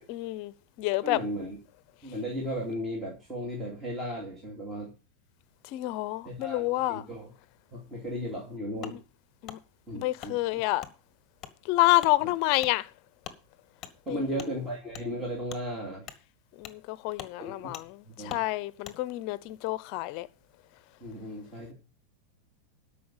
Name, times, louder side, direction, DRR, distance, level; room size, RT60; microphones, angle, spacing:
voice 1, 0.0-1.2 5.6-7.1 8.8-9.0 9.4-9.6 9.9-10.9 11.6-12.9 14.1-14.3 16.6-20.3, left 18 dB, 45° left, 0.7 m, -28 dB
voice 2, 1.0-1.6 2.0-4.9 6.2-7.3 7.7-9.0 9.9-10.6 12.2-12.3 14.0-16.1 17.4-17.7 18.0-18.4 21.0-21.7, equal, 10° right, 2.8 m, -36 dB
Wood, 8.8-9.0 9.5-9.6 10.2-10.3 10.8-10.9 11.4-11.5 12.0-12.2 12.6-12.7 13.2-13.4 13.8-13.9 14.4-14.5 14.9-15.1 15.5-15.6 16.0-16.2 16.6-16.8 17.1-17.3 17.7-17.9 18.3-18.5 18.8-19.0, left 9 dB, 25° left, 1.5 m, -42 dB
12.5 x 5.6 x 7.2 m
supercardioid pair, 160°, 0 cm